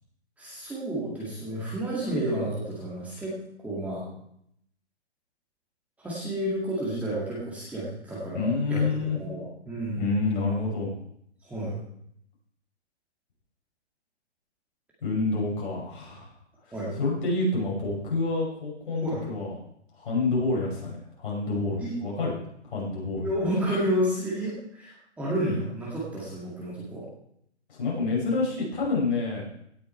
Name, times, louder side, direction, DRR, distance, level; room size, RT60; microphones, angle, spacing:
voice 1, 0.4-3.3 3.6-4.0 6.0-8.8 9.2-10.0 11.4-11.8 16.7-16.9 19.0-19.2 21.8-21.9 23.2-27.1, right 1 dB, 5° right, -8 dB, 2.2 m, -30 dB
voice 2, 8.3-9.2 10.0-10.9 15.0-16.3 17.0-19.5 19.9-22.4 22.7-23.3 27.7-29.4, left 3 dB, 45° left, -3 dB, 5.9 m, -28 dB
17.5 x 6.7 x 4.5 m, 0.72 s
hypercardioid pair, 150°, 35 cm